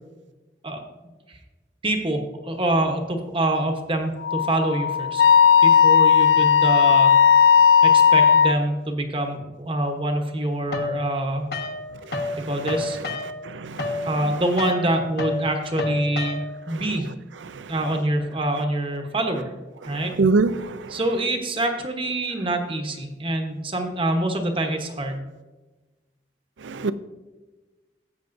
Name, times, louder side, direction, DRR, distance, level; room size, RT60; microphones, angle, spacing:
voice 1, 1.8-5.2 5.6-7.1 7.8-11.5 12.5-13.0 14.1-17.1 17.7-19.5 19.9-20.1 20.9-25.2, right 1 dB, 30° right, 4 dB, 1.0 m, -25 dB
Wind instrument woodwind instrument, 4.2-8.5, left 7 dB, 80° left, 0.5 m, -16 dB
sound 1, 10.7-12.4 12.6-16.7, left 2 dB, 60° left, 1.0 m, -30 dB
voice 2, 13.5-14.1 20.2-20.7 26.6-26.9, right 3 dB, 85° right, 13 dB, 0.5 m, -22 dB
13.5 x 8.3 x 2.6 m, 1.2 s
head